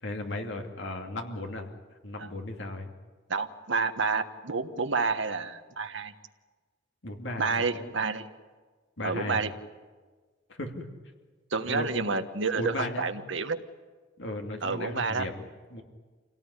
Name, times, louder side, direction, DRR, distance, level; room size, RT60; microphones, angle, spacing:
voice 1, 0.0-1.7 2.0-2.9 7.0-7.9 9.0-9.4 10.5-10.9 11.7-11.9 12.6-13.1 14.2-15.8, left 1 dB, 65° left, 3 dB, 2.7 m, -36 dB
voice 2, 3.3-6.1 7.4-8.3 9.0-9.5 11.5-13.6 14.6-15.3, right 4 dB, 70° right, 8 dB, 1.3 m, -29 dB
26.5 x 18.0 x 9.9 m, 1.4 s
head